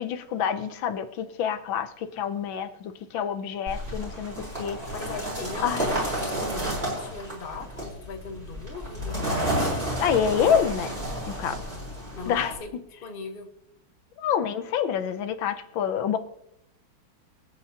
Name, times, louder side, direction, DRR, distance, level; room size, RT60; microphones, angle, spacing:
voice 1, 0.0-4.8 5.6-5.9 10.0-10.9 11.3-11.7 12.3-12.5 14.2-16.2, left 8 dB, 80° left, 1.5 m, -27 dB
sound 1, 3.7-12.6, right 1 dB, 30° right, 4.4 m, -31 dB
voice 2, 4.9-9.3 12.1-12.7 13.0-13.5, left 4 dB, 35° left, 1.2 m, -39 dB
24.0 x 8.2 x 2.8 m
omnidirectional pair, 2.1 m